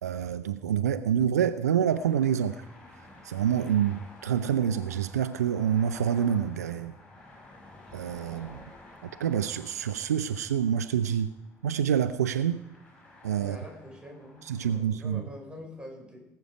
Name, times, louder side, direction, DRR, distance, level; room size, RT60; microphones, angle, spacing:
voice 1, 0.0-2.7 3.2-7.0 7.9-8.7 9.0-11.3 11.6-12.6 13.2-13.6 14.4-15.2, right 9 dB, 75° right, 11 dB, 0.4 m, -27 dB
sound 1, 1.8-14.8, left 2 dB, 15° left, 5.6 m, -52 dB
voice 2, 13.4-16.3, equal, 10° right, 0 dB, 5.5 m, -45 dB
19.0 x 8.0 x 4.8 m, 0.90 s
figure-of-eight pair, 55°, 9 cm